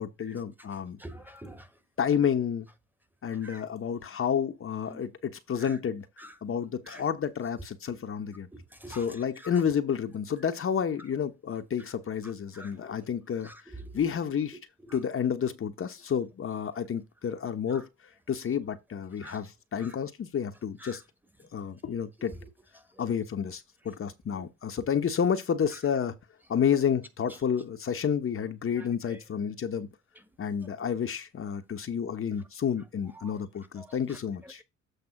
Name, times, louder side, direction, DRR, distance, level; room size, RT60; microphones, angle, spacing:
voice 1, 0.0-1.0 2.0-2.7 3.2-6.1 6.4-8.5 8.9-14.6 14.9-17.9 18.3-21.0 21.5-22.3 23.0-26.2 26.5-29.9 30.4-34.6, left 7 dB, 45° left, 1.0 m, -30 dB
voice 2, 1.0-1.7 3.4-3.6 4.9-5.0 6.2-6.3 6.9-7.0 8.8-9.0 12.5-12.7 13.4-13.5 17.7-17.8 19.2-19.4 19.8-19.9 20.8-21.0 33.2-33.3 33.8-34.2, right 1 dB, 5° right, 1.3 m, -45 dB
8.1 x 3.3 x 5.8 m
cardioid pair, 90°, 30 cm